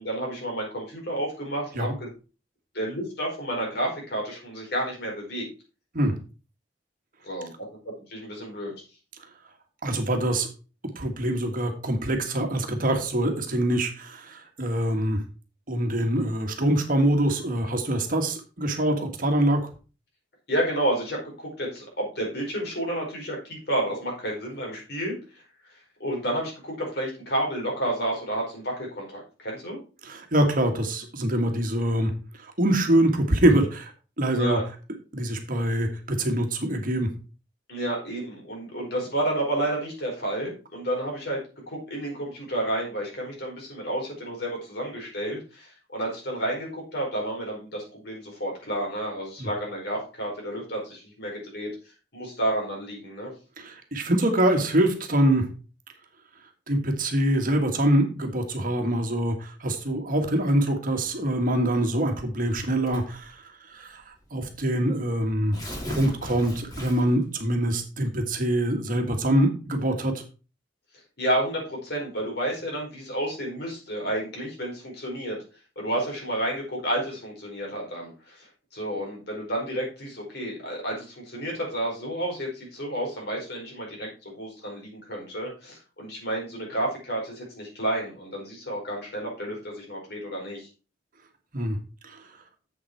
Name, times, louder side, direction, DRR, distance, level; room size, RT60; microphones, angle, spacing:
voice 1, 0.0-2.1 2.7-5.4 7.2-7.5 8.1-8.7 20.5-25.2 26.0-29.8 34.3-34.6 37.7-41.4 41.7-51.7 52.1-53.3 71.2-75.4 75.8-90.7, right 1 dB, 65° left, -1 dB, 4.8 m, -30 dB
voice 2, 9.8-10.5 10.9-15.2 15.7-19.7 30.0-32.1 32.4-33.9 34.2-34.6 35.1-37.1 49.4-49.5 53.6-55.5 56.7-63.4 63.7-65.6 65.9-70.2 91.5-91.8 92.0-92.2, right 1 dB, 50° right, 4 dB, 1.6 m, -24 dB
Tearing, 62.9-63.3 64.1-64.2 64.5-64.6 65.3-67.2, equal, 20° left, 2.7 m, -36 dB
7.6 x 7.2 x 4.6 m, 0.34 s
head